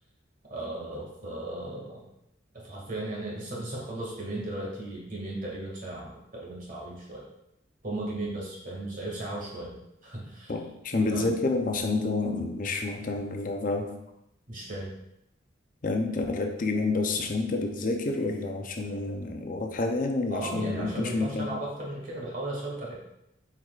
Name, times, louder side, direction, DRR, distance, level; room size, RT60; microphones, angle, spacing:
voice 1, 0.5-2.0 2.5-7.2 7.8-10.5 11.1-11.3 14.5-14.9 20.3-22.9, right 1 dB, 45° right, -4 dB, 2.1 m, -36 dB
voice 2, 10.5-14.0 15.8-21.5, left 3 dB, 45° left, 3 dB, 0.6 m, -29 dB
8.3 x 4.7 x 2.4 m, 0.83 s
head